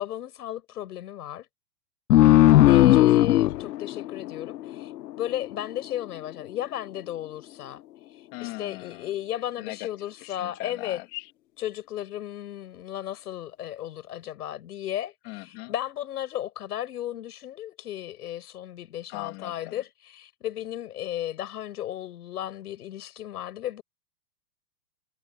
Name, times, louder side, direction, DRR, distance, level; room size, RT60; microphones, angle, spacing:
voice 1, 0.0-1.5 2.6-7.8 8.1-11.0 11.6-23.8, left 12 dB, 70° left, 6.6 m, -34 dB
sound 1, 2.1-5.3, left 14 dB, 90° left, 0.8 m, -18 dB
voice 2, 2.2-3.7 8.3-9.1 9.6-9.9 10.2-11.3 15.2-15.7 19.1-19.7, left 24 dB, 30° left, 2.6 m, -40 dB
hypercardioid pair, 160°, 48 cm